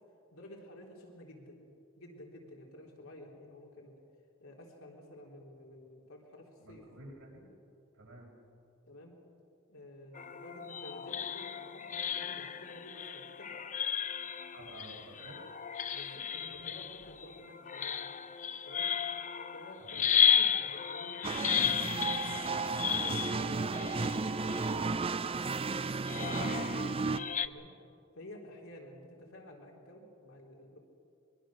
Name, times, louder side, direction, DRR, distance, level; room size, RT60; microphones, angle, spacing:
voice 1, 0.3-1.6 2.0-3.9 4.4-6.8 8.9-9.1 9.7-13.7 15.9-18.0 18.6-18.9 19.5-22.4 22.9-25.2 27.4-27.7 28.2-30.8, left 1 dB, 75° left, -1 dB, 3.7 m, -51 dB
voice 2, 6.6-7.5 7.9-8.3 14.5-15.4 19.8-20.4, right 1 dB, 90° right, -2 dB, 6.3 m, -51 dB
sound 1, 10.1-25.1 26.1-27.5, left 8 dB, 35° left, 0.6 m, -34 dB
sound 2, 21.2-27.2, right 4 dB, 25° right, 0.5 m, -33 dB
23.0 x 23.0 x 6.4 m, 2.6 s
head